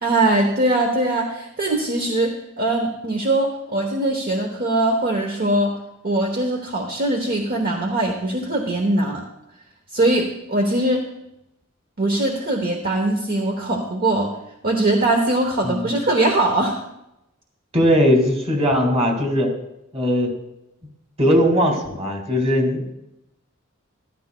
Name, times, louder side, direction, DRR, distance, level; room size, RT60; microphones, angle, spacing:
voice 1, 0.0-5.7 6.0-9.2 9.9-11.0 12.0-14.3 14.6-16.7, right 2 dB, 45° right, 2 dB, 1.0 m, -21 dB
voice 2, 17.7-19.5 19.9-20.3 21.2-23.0, equal, 30° right, 2 dB, 2.1 m, -19 dB
14.0 x 12.5 x 2.2 m, 0.86 s
head